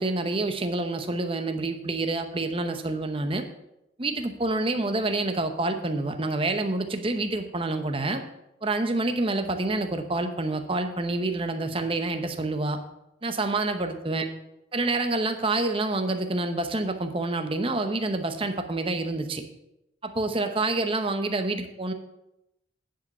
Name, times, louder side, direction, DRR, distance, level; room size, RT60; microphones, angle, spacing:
voice 1, 0.0-3.5 4.0-8.2 8.6-12.8 13.2-14.3 14.7-19.4 20.0-21.9, right 2 dB, 30° right, 7 dB, 0.8 m, -27 dB
10.0 x 5.1 x 6.6 m, 0.87 s
head